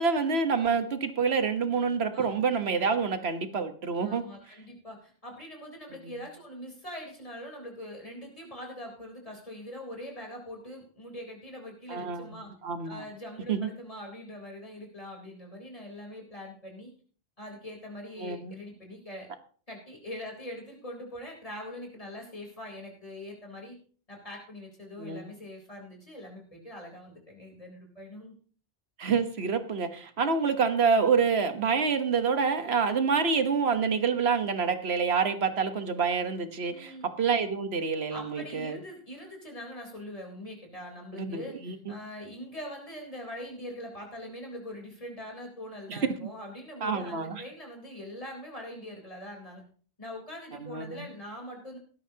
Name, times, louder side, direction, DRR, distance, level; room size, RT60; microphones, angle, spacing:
voice 1, 0.0-4.2 11.9-13.0 13.5-13.7 18.2-18.5 25.0-25.3 29.0-38.8 41.1-41.9 45.9-46.2 46.8-47.4 50.6-51.1, right 5 dB, 85° right, 8 dB, 1.5 m, -27 dB
voice 2, 4.0-12.5 12.8-16.9 17.4-19.3 19.7-23.8 24.1-28.4 36.7-37.1 38.1-49.6 50.0-51.8, left 1 dB, 35° left, 0 dB, 4.0 m, -43 dB
17.0 x 13.0 x 2.9 m, 0.42 s
omnidirectional pair, 1.0 m